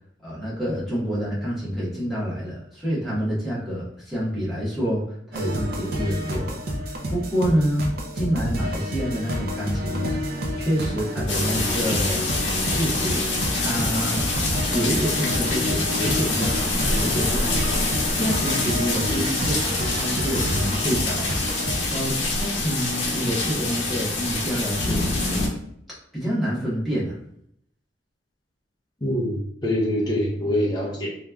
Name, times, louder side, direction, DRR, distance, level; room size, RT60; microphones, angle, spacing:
voice 1, 0.2-5.0 5.3-6.6 7.1-10.2 10.5-12.3 12.6-13.2 13.5-14.2 14.7-21.4 21.9-25.5 26.1-27.1, equal, ahead, -10 dB, 1.1 m, -27 dB
sound 1, 5.3-22.1, equal, 50° right, 0.4 m, -29 dB
sound 2, 11.3-25.5, left 2 dB, 75° left, 0.7 m, -25 dB
voice 2, 29.0-31.1, left 1 dB, 20° left, -4 dB, 0.5 m, -24 dB
3.0 x 2.3 x 2.3 m, 0.70 s
head